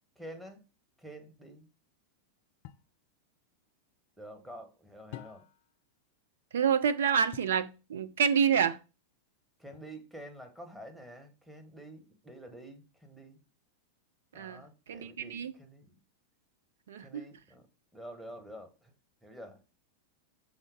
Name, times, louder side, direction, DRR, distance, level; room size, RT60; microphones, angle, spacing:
voice 1, 0.1-0.6 1.0-1.7 4.2-5.5 9.6-13.4 14.3-16.0 17.0-17.7 17.9-18.9 19.2-19.6, right 1 dB, 5° right, 1.3 m, -48 dB
sound 1, 2.6-3.0 5.1-5.7 7.3-7.7 9.7-10.3, left 12 dB, 50° left, 0.4 m, -49 dB
voice 2, 6.5-8.8 14.3-15.5 16.9-17.2, right 7 dB, 60° right, 0.6 m, -28 dB
6.4 x 3.6 x 4.8 m
figure-of-eight pair, 90°, 0 cm